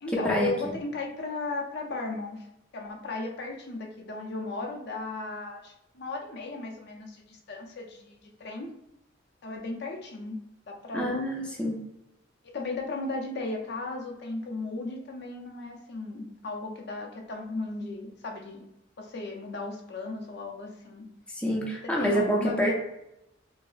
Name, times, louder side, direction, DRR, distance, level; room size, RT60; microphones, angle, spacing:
voice 1, 0.0-2.4 2.7-8.7 9.4-10.4 10.7-11.1 12.4-18.6 19.0-21.1 21.8-22.7, left 3 dB, 60° left, 1 dB, 0.6 m, -36 dB
voice 2, 10.9-11.8 21.3-22.7, equal, 5° left, -2 dB, 0.5 m, -27 dB
4.6 x 2.0 x 2.4 m, 0.86 s
head